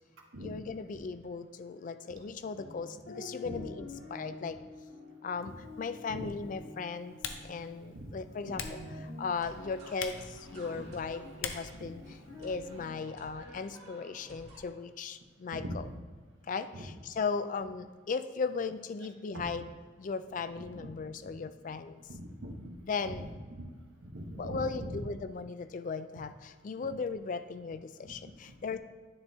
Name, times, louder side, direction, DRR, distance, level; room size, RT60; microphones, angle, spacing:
voice 1, 0.4-4.6 5.2-7.2 7.4-8.6 9.0-15.8 16.4-19.7 20.0-22.0 22.9-23.3 24.4-28.8, left 5 dB, 40° left, 11 dB, 0.3 m, -37 dB
sound 1, 2.4-12.9, left 2 dB, 65° left, 1.7 m, -48 dB
Typing, 5.4-12.9, left 6 dB, 85° left, 0.6 m, -46 dB
voice 2, 8.4-8.9 10.7-10.8 11.7-11.9 15.5-15.8 16.7-16.9 19.3-19.4 20.7-20.9 21.6-21.7 22.1-23.2 23.5-23.7 24.0-25.0 26.8-26.9 28.0-28.8, right 1 dB, 85° right, 2 dB, 1.1 m, -43 dB
sound 2, 9.4-14.6, equal, 55° right, 1.9 m, -53 dB
9.8 x 4.1 x 3.5 m, 1.5 s
head